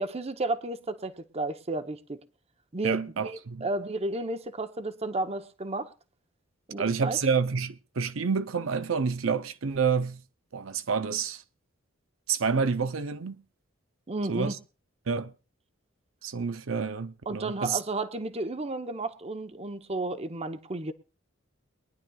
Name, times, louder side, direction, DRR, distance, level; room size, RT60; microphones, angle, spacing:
voice 1, 0.0-2.2 2.7-5.9 6.7-7.2 14.1-14.6 17.3-20.9, right 2 dB, 30° right, 0.9 m, -32 dB
voice 2, 2.8-3.7 6.8-10.2 10.5-11.4 12.3-13.4 14.3-14.6 15.1-15.3 16.2-17.8, right 5 dB, 75° right, 0.7 m, -28 dB
22.5 x 10.5 x 2.4 m
head